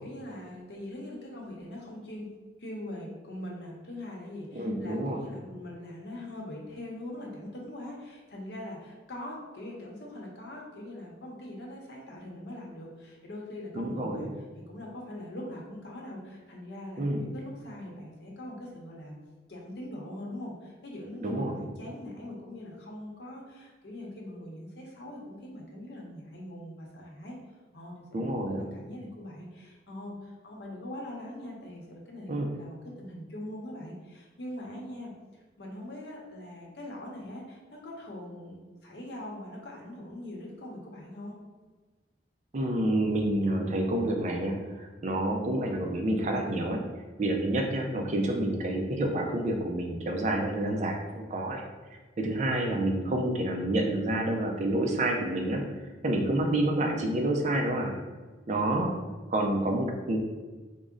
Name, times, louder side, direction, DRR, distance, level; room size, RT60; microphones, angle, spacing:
voice 1, 0.0-2.3 2.6-14.3 14.7-19.2 19.5-27.4 27.7-41.4, left 1 dB, 65° left, -2 dB, 0.8 m, -42 dB
voice 2, 4.5-5.2 13.7-14.3 17.0-17.3 21.2-21.7 28.1-28.7 32.3-32.5 42.5-46.8 47.2-51.6 52.2-55.7 56.0-58.0 58.5-59.0 59.3-60.2, right 1 dB, 40° right, 2 dB, 0.4 m, -28 dB
3.6 x 2.0 x 3.6 m, 1.3 s
head